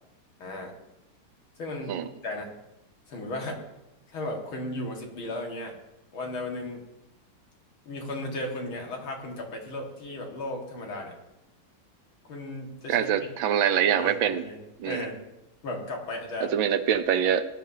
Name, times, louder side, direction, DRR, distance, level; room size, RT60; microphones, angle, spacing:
voice 1, 0.4-0.7 1.6-2.5 3.1-3.6 4.1-5.7 6.1-6.8 7.9-11.1 12.3-13.1 13.9-14.6 14.8-15.2 15.6-16.5, left 1 dB, 85° left, 1 dB, 2.8 m, -35 dB
voice 2, 12.9-14.4 14.8-15.1 16.4-17.5, right 9 dB, 75° right, 10 dB, 1.4 m, -24 dB
19.0 x 10.5 x 2.8 m, 0.93 s
omnidirectional pair, 2.2 m